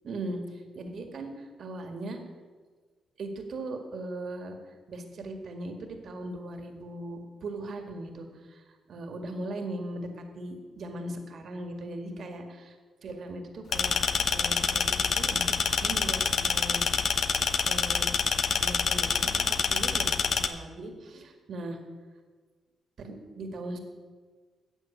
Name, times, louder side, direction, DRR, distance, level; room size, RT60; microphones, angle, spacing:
voice 1, 0.0-2.2 3.2-4.6 4.9-8.6 8.9-12.8 13.0-16.8 17.1-17.2 17.7-18.1 18.6-19.3 19.7-20.2 20.5-21.8 23.0-23.8, right 2 dB, 65° right, 5 dB, 1.9 m, -39 dB
sound 1, 13.7-20.5, left 6 dB, 60° left, 0.8 m, -27 dB
13.0 x 7.9 x 7.2 m, 1.5 s
cardioid pair, 70°, 0 cm